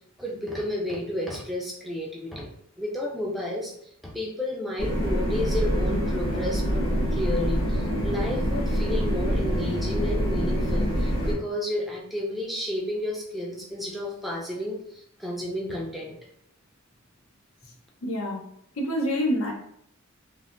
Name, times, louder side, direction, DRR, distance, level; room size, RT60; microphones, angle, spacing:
voice 1, 0.2-2.5 2.8-3.7 4.0-16.2, left 1 dB, ahead, -3 dB, 0.4 m, -32 dB
sound 1, 4.8-11.4, equal, 75° left, 1.0 m, -25 dB
voice 2, 18.0-18.4 18.8-19.5, equal, 90° left, 0 dB, 0.7 m, -26 dB
3.2 x 2.1 x 2.4 m, 0.70 s
head